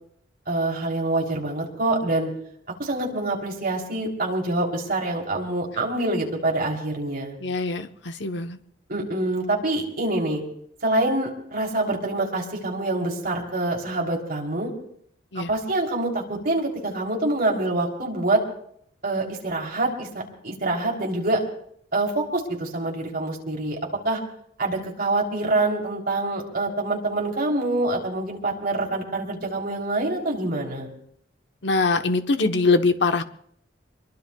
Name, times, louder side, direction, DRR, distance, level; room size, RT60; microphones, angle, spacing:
voice 1, 0.5-2.3 2.8-7.4 8.9-10.4 10.8-14.7 15.5-18.4 19.0-21.4 21.9-23.8 24.0-24.2 24.6-30.9, right 2 dB, 50° right, -1 dB, 3.4 m, -26 dB
voice 2, 7.4-8.6 15.3-15.5 31.6-33.2, left 3 dB, 65° left, 8 dB, 1.0 m, -23 dB
25.0 x 22.0 x 2.3 m, 0.66 s
head